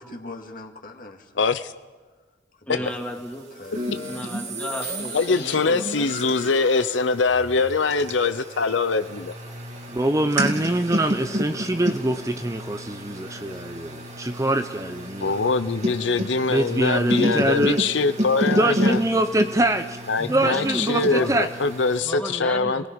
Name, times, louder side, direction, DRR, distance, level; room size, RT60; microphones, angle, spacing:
voice 1, 0.0-1.4 2.6-2.9 3.5-4.0, left 2 dB, 50° left, 3 dB, 2.1 m, -41 dB
voice 2, 1.4-1.7 2.7-2.8 5.1-9.3 15.2-19.0 20.1-22.9, left 4 dB, 90° left, 11 dB, 0.8 m, -23 dB
voice 3, 2.7-3.5 4.0-6.6 20.2-21.4 22.0-22.9, equal, 5° left, 0 dB, 2.2 m, -34 dB
sound 1, 3.7-22.0, equal, 40° right, 2.4 m, -31 dB
sound 2, 4.8-8.5, left 5 dB, 70° left, 2.7 m, -43 dB
voice 4, 9.9-15.3 16.5-17.8 18.5-20.0 20.3-21.5, right 1 dB, 15° right, 8 dB, 0.6 m, -24 dB
28.0 x 19.5 x 5.2 m, 1.3 s
head